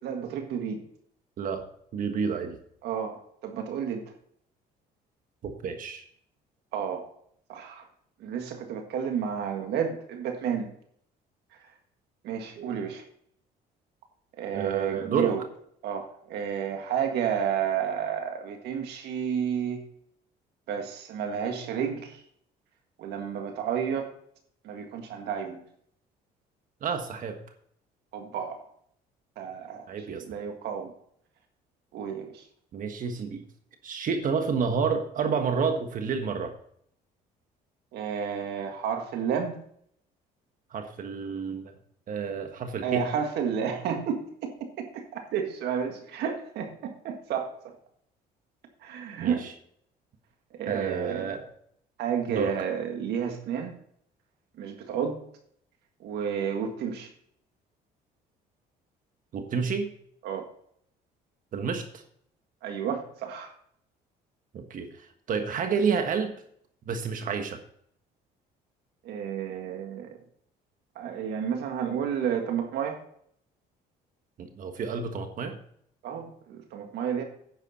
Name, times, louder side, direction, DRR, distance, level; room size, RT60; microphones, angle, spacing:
voice 1, 0.0-0.8 2.8-4.0 6.7-7.0 7.5-7.9 8.2-10.7 12.2-13.0 14.4-15.4 15.8-19.8 20.7-22.2 23.0-24.1 24.6-25.6 28.1-28.6 29.4-30.9 31.9-32.4 37.9-39.6 42.8-47.7 48.8-49.5 50.5-51.3 52.0-53.7 54.6-55.2 56.0-57.1 60.2-60.5 62.6-63.5 69.0-70.2 71.0-73.0 76.0-77.2, right 7 dB, 75° right, 4 dB, 1.8 m, -31 dB
voice 2, 1.9-2.6 5.4-6.0 12.6-12.7 14.5-15.3 26.8-27.4 29.9-30.2 32.7-33.4 33.8-36.6 40.7-41.7 42.1-43.0 49.2-49.5 50.7-51.4 52.3-52.5 59.3-59.9 61.5-62.0 64.5-66.3 66.9-67.6 74.4-75.6, right 5 dB, 55° right, 6 dB, 1.4 m, -30 dB
10.5 x 8.2 x 4.2 m, 0.66 s
cardioid pair, 110°, 17 cm